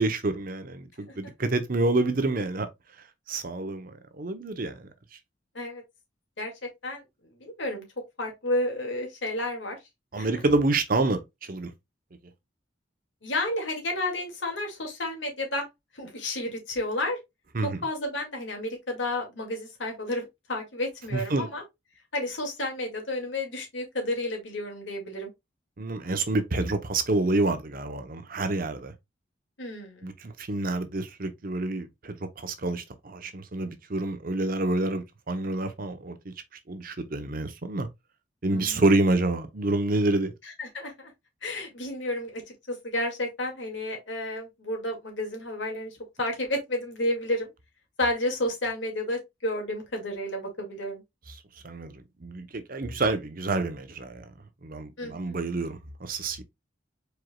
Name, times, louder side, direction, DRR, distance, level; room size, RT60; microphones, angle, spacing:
voice 1, 0.0-2.7 3.3-4.9 10.1-11.2 11.5-11.7 17.5-17.8 21.1-21.5 25.8-28.9 30.0-36.3 36.7-37.9 38.4-40.3 51.6-51.9 52.2-54.2 54.6-56.4, right 2 dB, 50° right, 0.8 m, -28 dB
voice 2, 6.4-7.0 7.4-7.8 8.2-9.8 10.1-10.4 13.2-15.7 15.9-17.2 17.6-21.6 22.1-25.3 29.6-30.1 38.5-38.8 40.4-41.1 41.4-47.5 48.0-51.0 55.0-55.3, left 1 dB, 85° left, 2.2 m, -31 dB
5.0 x 4.5 x 2.3 m
head